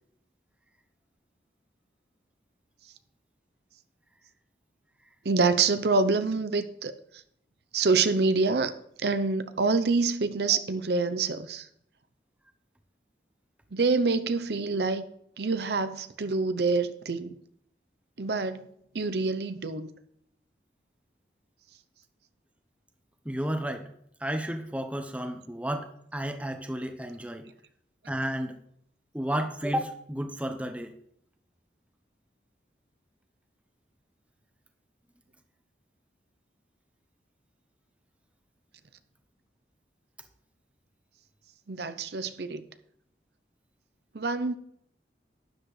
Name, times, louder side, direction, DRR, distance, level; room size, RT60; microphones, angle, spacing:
voice 1, 5.2-7.2 7.7-8.7 9.0-11.7 13.7-15.0 15.4-17.3 18.2-18.7 18.9-19.9 41.7-42.6 44.1-44.6, right 4 dB, 70° right, 0.7 m, -26 dB
voice 2, 23.2-23.9 24.2-27.5 28.1-28.6 29.1-30.9, right 1 dB, 10° right, 0.9 m, -32 dB
12.0 x 10.0 x 3.3 m
head